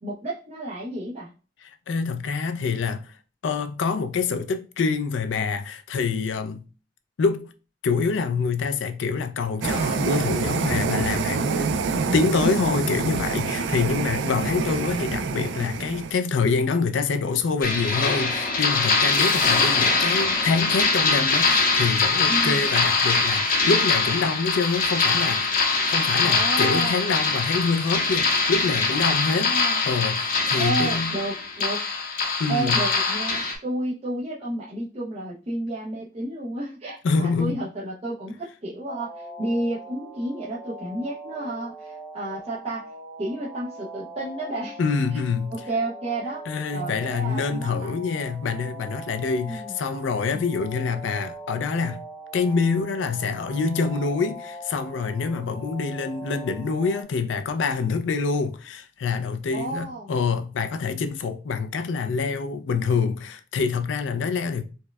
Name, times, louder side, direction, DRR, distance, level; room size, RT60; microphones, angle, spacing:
voice 1, 0.0-1.3 22.3-22.7 26.2-26.9 29.3-29.8 30.5-31.8 32.5-42.9 43.2-44.8 45.5-46.4 46.7-48.0 49.4-49.8 50.3-50.5 59.5-60.1, right 1 dB, 35° right, 0.6 m, -31 dB
voice 2, 1.6-3.1 3.4-6.6 7.2-7.5 7.8-11.8 12.1-25.5 25.9-29.5 29.9-31.2 32.4-32.8 37.0-37.6 44.8-45.6 46.5-52.0 52.3-64.6, left 4 dB, 80° left, 0.4 m, -26 dB
sound 1, 9.6-16.1, right 4 dB, 75° right, 0.3 m, -26 dB
sound 2, 17.6-33.6, left 4 dB, 50° left, 0.7 m, -23 dB
sound 3, 38.9-57.0, right 2 dB, 5° left, 0.9 m, -41 dB
4.3 x 2.1 x 2.3 m
head